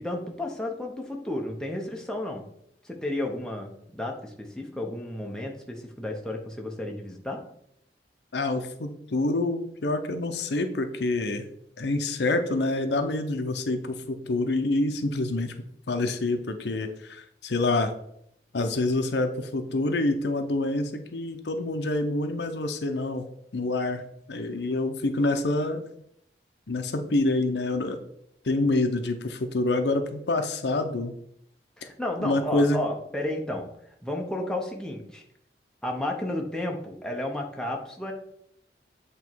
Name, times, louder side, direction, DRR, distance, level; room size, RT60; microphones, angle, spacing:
voice 1, 0.0-2.5 2.8-7.4 31.8-33.7 34.0-35.2 35.8-38.1, left 1 dB, 5° left, 0 dB, 0.8 m, -32 dB
voice 2, 8.3-11.4 11.8-15.5 15.9-17.9 18.5-23.2 23.5-24.0 24.3-25.8 26.7-28.0 28.4-31.1 32.2-32.8, left 2 dB, 75° left, 7 dB, 0.7 m, -27 dB
8.2 x 3.1 x 4.5 m, 0.73 s
head